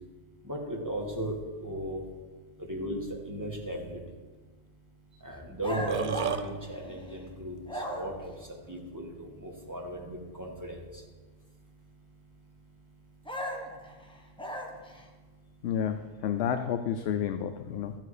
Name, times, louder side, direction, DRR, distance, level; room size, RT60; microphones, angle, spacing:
voice 1, 0.4-2.0 2.6-4.0 5.2-8.1 8.7-10.8, right 1 dB, 15° right, 0 dB, 1.6 m, -36 dB
Burping eructation, 5.2-5.3 5.6-6.4, right 8 dB, 55° right, 0.7 m, -31 dB
sound 1, 5.6-7.2 7.7-8.3 13.3-15.1, left 1 dB, 5° left, 1.1 m, -37 dB
voice 2, 15.6-18.0, left 8 dB, 80° left, 8 dB, 0.8 m, -30 dB
12.5 x 7.5 x 4.9 m, 1.4 s
omnidirectional pair, 1.1 m